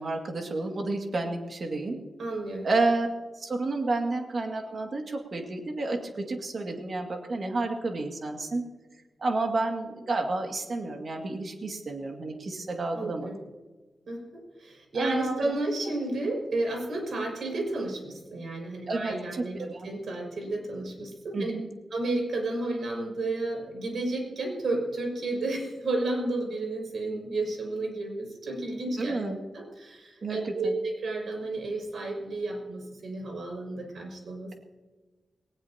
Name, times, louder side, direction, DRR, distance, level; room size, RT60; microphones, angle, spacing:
voice 1, 0.0-2.0 2.6-3.1 3.3-8.6 9.2-13.3 15.0-15.6 18.9-19.9 21.3-21.7 29.0-29.4 30.2-30.7, right 2 dB, 50° right, 2 dB, 2.3 m, -30 dB
voice 2, 2.2-2.7 12.9-13.4 14.1-19.6 19.8-21.5 21.9-29.2 29.5-34.5, right 2 dB, 70° right, 1 dB, 6.0 m, -32 dB
20.0 x 19.5 x 2.9 m, 1.2 s
wide cardioid pair, 135°, 0 cm